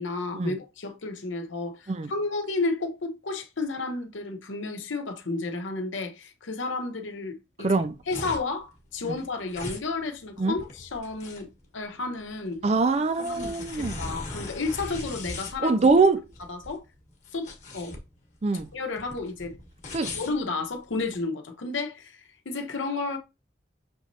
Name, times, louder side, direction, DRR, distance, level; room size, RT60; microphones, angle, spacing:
voice 1, 0.0-11.5 11.7-12.6 13.2-15.8 16.5-16.8 17.3-17.9 18.7-19.6 19.9-23.2, left 3 dB, 85° left, 0.9 m, -32 dB
voice 2, 7.6-8.0 10.4-10.6 12.6-14.0 15.6-16.2 18.4-18.7 19.9-20.1, right 3 dB, 35° right, 0.4 m, -23 dB
sound 1, 7.7-21.2, left 2 dB, 40° left, 1.2 m, -40 dB
6.2 x 3.1 x 2.6 m
head